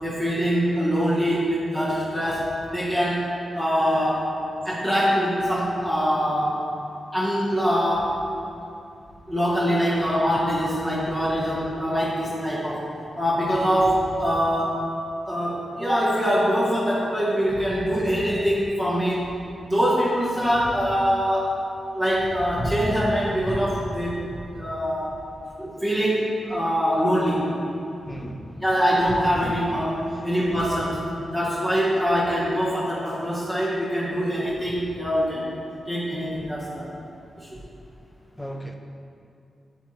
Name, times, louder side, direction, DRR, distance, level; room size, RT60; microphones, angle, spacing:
voice 1, 0.0-3.2 3.5-4.3 4.6-6.6 7.1-8.1 9.3-12.8 13.2-14.8 15.2-19.3 19.6-21.5 21.9-24.2 24.5-25.2 25.6-27.5 28.1-28.2 28.6-31.0 31.3-35.6 35.9-36.9 37.4-37.6, equal, 15° right, -9 dB, 1.3 m, -23 dB
voice 2, 28.1-28.6 30.1-30.2 38.4-38.8, right 1 dB, 5° left, 4 dB, 0.6 m, -36 dB
12.0 x 4.4 x 3.3 m, 2.6 s
wide cardioid pair, 125°, 0 cm